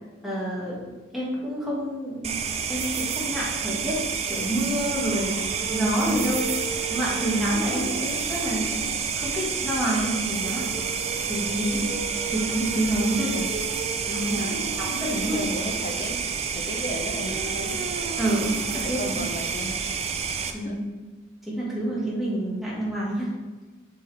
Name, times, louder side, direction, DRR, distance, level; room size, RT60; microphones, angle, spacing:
voice 1, 0.2-2.4 2.7-4.0 4.3-5.4 5.7-6.5 6.9-10.8 11.3-11.9 12.3-13.4 14.1-14.4 14.8-15.4 18.2-19.0 20.5-20.9 21.5-23.3, right 1 dB, ahead, -7 dB, 1.7 m, -28 dB
sound 1, 2.2-20.5, right 6 dB, 35° right, 0.4 m, -29 dB
sound 2, 5.2-20.1, right 3 dB, 80° right, 0.6 m, -38 dB
voice 2, 14.3-14.6 15.1-16.2 16.5-18.2 18.8-19.8 20.6-20.8, equal, 40° left, 4 dB, 0.7 m, -34 dB
6.5 x 5.5 x 3.4 m, 1.3 s
head